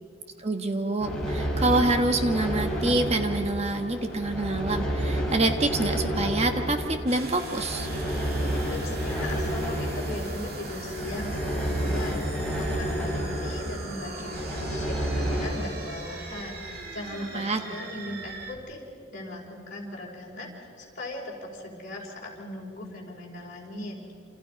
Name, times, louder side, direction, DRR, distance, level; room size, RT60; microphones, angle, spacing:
voice 1, 0.4-7.9 17.3-17.6, right 2 dB, 30° right, 6 dB, 1.4 m, -26 dB
sound 1, 1.0-15.5, equal, 5° left, 6.0 m, -30 dB
sound 2, 7.1-18.5, right 3 dB, 50° right, 2.4 m, -41 dB
voice 2, 8.7-18.8 19.1-24.0, left 1 dB, 40° left, -4 dB, 4.7 m, -39 dB
28.0 x 27.0 x 5.2 m, 2.4 s
head